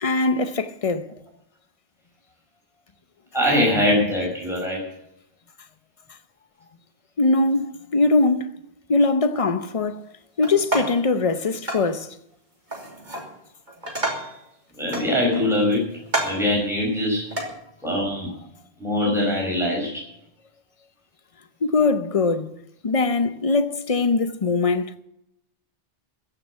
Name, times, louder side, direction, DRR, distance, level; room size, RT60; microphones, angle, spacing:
voice 1, 0.0-1.1 7.2-8.6 8.9-10.0 10.4-12.1 21.6-22.5 22.8-25.0, left 3 dB, 35° left, 0.9 m, -21 dB
voice 2, 3.3-4.8 14.7-15.9 16.2-17.2 17.8-18.3 18.8-20.0, left 1 dB, ahead, 5.7 m, -22 dB
sound 1, 10.4-11.1 11.7-11.9 12.7-13.3 13.7-14.4 14.9-15.6 16.1-16.5 17.3-17.5, right 1 dB, 45° right, 3.2 m, -29 dB
15.0 x 6.9 x 9.9 m
omnidirectional pair, 1.1 m